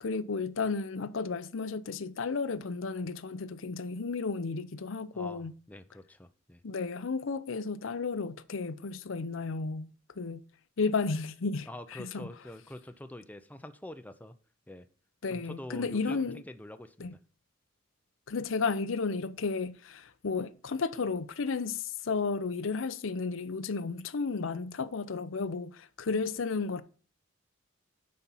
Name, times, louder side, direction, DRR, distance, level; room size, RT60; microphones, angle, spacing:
voice 1, 0.0-5.5 6.6-9.9 10.2-10.4 10.8-12.3 15.2-16.4 17.0-17.1 18.3-26.8, left 4 dB, 70° left, 0.6 m, -33 dB
voice 2, 5.1-6.6 11.7-14.3 14.7-14.9 15.3-17.1, left 1 dB, 10° left, 0.6 m, -45 dB
9.8 x 4.4 x 5.4 m
head